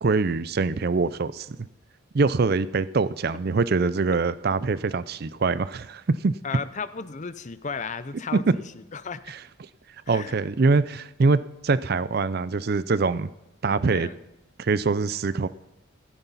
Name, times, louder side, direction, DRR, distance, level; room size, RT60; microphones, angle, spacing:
voice 1, 0.0-1.6 2.1-6.3 9.3-9.4 10.1-13.3 13.6-14.1 14.6-15.5, right 4 dB, 45° right, 17 dB, 0.4 m, -24 dB
voice 2, 6.4-8.6 8.9-9.2 10.1-10.3 13.9-14.2, left 5 dB, 35° left, 14 dB, 0.5 m, -34 dB
15.5 x 13.0 x 4.1 m, 0.93 s
head